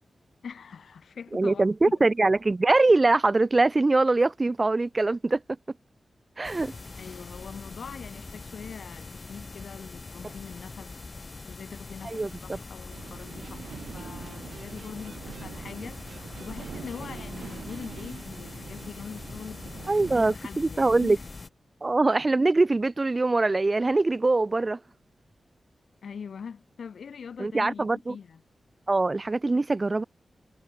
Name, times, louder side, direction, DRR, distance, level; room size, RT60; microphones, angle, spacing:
voice 1, 0.4-2.0 6.6-6.7 7.0-10.9 11.5-21.2 26.0-28.4, left 6 dB, 75° left, 3.4 m, -42 dB
voice 2, 1.3-5.4 6.4-6.7 12.0-12.6 19.9-21.2 21.8-24.8 27.4-28.2 28.9-30.0, right 3 dB, 25° right, 0.4 m, -23 dB
sound 1, 6.4-21.5, left 3 dB, 30° left, 0.6 m, -43 dB
sound 2, 12.9-20.4, right 7 dB, 85° right, 3.0 m, -44 dB
Electric guitar, 13.4-18.3, right 6 dB, 70° right, 2.6 m, -50 dB
wide cardioid pair, 160°, 0 cm